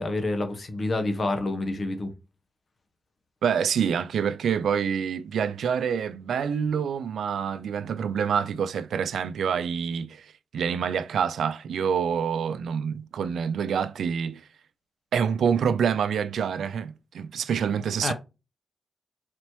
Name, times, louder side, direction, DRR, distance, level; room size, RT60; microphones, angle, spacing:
voice 1, 0.0-2.1 18.0-18.1, left 2 dB, 50° left, 1.1 m, -28 dB
voice 2, 3.4-14.4 15.1-18.1, right 7 dB, 75° right, 0.3 m, -27 dB
4.0 x 3.0 x 2.9 m
supercardioid pair, 40°, 0 cm